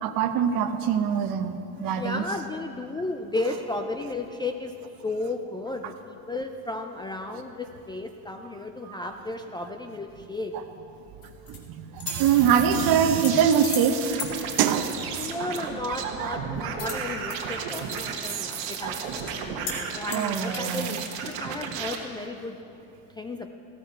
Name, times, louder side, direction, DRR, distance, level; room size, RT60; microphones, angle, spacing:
voice 1, 0.0-2.2 5.8-5.9 8.9-9.0 11.5-14.2 14.6-14.9 20.1-21.0, right 8 dB, 55° right, 8 dB, 1.0 m, -23 dB
voice 2, 1.7-4.7 5.0-10.5 15.2-22.6 23.2-23.5, left 2 dB, 10° left, 5 dB, 0.3 m, -34 dB
sound 1, 11.2-11.6 12.0-12.3 13.0-13.9 14.2-14.3 16.8-17.4 17.7-18.3 18.7-18.8 19.1-19.3 19.6-19.8 20.1-20.8, left 6 dB, 55° left, 2.3 m, -36 dB
sound 2, 12.1-22.0, right 7 dB, 80° right, 1.5 m, -33 dB
15.0 x 13.0 x 4.5 m, 2.9 s
supercardioid pair, 120°, 41 cm